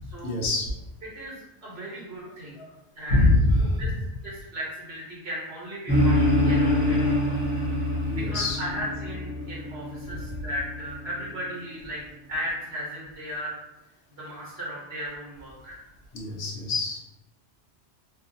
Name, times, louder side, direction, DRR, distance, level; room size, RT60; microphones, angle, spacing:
voice 1, 0.2-0.8 2.2-2.3 2.6-2.8 3.1-3.9 7.9-8.6 10.1-10.2 16.1-17.0, left 2 dB, 70° left, 0 dB, 0.9 m, -24 dB
voice 2, 1.1-2.6 3.0-3.3 3.8-3.9 4.2-7.4 8.1-12.0 12.3-13.6 14.2-15.8, equal, 70° right, -5 dB, 1.1 m, -36 dB
sound 1, 5.9-11.5, left 1 dB, 15° left, 0.5 m, -25 dB
2.7 x 2.3 x 2.5 m, 0.96 s
omnidirectional pair, 1.1 m